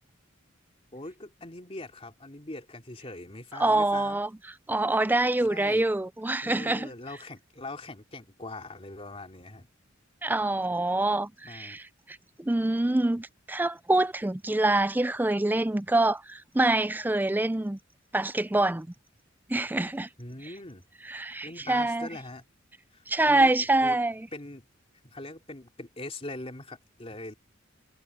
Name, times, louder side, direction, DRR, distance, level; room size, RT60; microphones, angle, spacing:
voice 1, 0.9-4.2 5.4-5.8 6.4-9.7 11.5-11.8 20.2-20.8 21.4-22.4 22.9-23.5 23.8-24.0 24.3-24.6 25.1-27.3, left 2 dB, 30° left, 3.0 m, -41 dB
voice 2, 3.6-4.3 4.7-6.9 10.2-17.8 18.1-18.9 19.5-20.1 21.1-22.1 23.1-24.3, right 2 dB, 10° right, 0.4 m, -26 dB
head